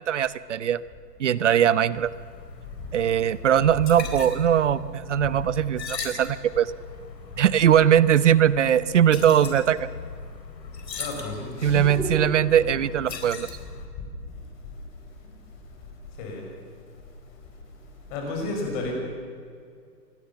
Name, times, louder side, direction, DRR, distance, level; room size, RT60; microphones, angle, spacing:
voice 1, 0.1-0.8 1.2-2.1 2.9-6.7 7.4-9.9 11.6-13.5, right 9 dB, 45° right, 17 dB, 0.9 m, -20 dB
sound 1, 1.9-13.9, left 5 dB, 80° left, 4.5 m, -39 dB
voice 2, 11.0-12.2 16.2-16.4 18.1-18.9, left 2 dB, 25° left, 1 dB, 6.0 m, -31 dB
25.5 x 20.0 x 7.1 m, 2.3 s
hypercardioid pair, 165°, 50 cm